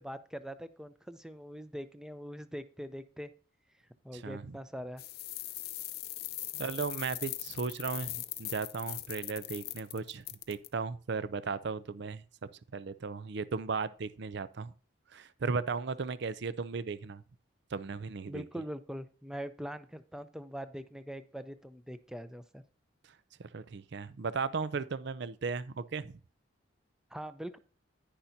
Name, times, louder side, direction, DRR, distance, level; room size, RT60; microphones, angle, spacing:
voice 1, 0.0-3.3 4.0-5.0 18.3-22.6 27.1-27.6, equal, 5° right, 0.5 m, -42 dB
voice 2, 4.1-4.6 6.6-12.2 12.7-14.7 15.1-17.2 17.7-18.4 23.4-26.1, right 4 dB, 55° right, 0.5 m, -36 dB
sound 1, 5.0-10.7, left 15 dB, 50° left, 0.6 m, -40 dB
10.5 x 10.0 x 2.7 m
head